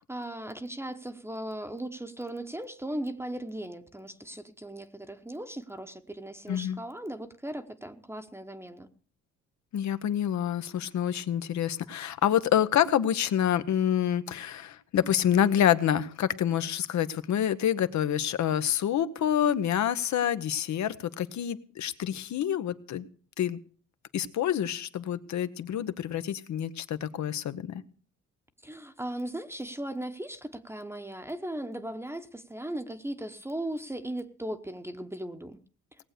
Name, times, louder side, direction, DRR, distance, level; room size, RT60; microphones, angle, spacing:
voice 1, 0.1-8.9 28.6-35.6, right 1 dB, 10° right, 1.0 m, -37 dB
voice 2, 9.7-23.0 23.4-23.6 24.1-27.8, left 10 dB, 65° left, 1.0 m, -27 dB
18.5 x 7.8 x 6.7 m
cardioid pair, 90°, 30 cm